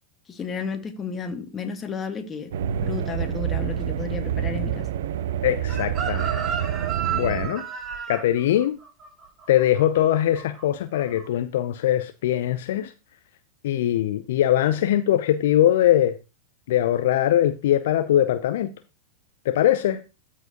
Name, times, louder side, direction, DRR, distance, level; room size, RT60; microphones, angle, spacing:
voice 1, 0.3-2.5 2.8-4.9, left 5 dB, 25° left, 1.5 m, -32 dB
sound 1, 2.5-7.5, right 9 dB, 65° right, 0.6 m, -27 dB
voice 2, 5.4-6.4 7.1-7.6 8.1-8.8 9.5-12.9 13.6-16.1 16.7-18.7 19.5-20.0, left 12 dB, 65° left, 0.5 m, -21 dB
Chicken rooster, 5.7-10.6 10.9-11.3, right 8 dB, 35° right, 4.8 m, -32 dB
13.5 x 4.7 x 2.9 m
hypercardioid pair, 95°, 0 cm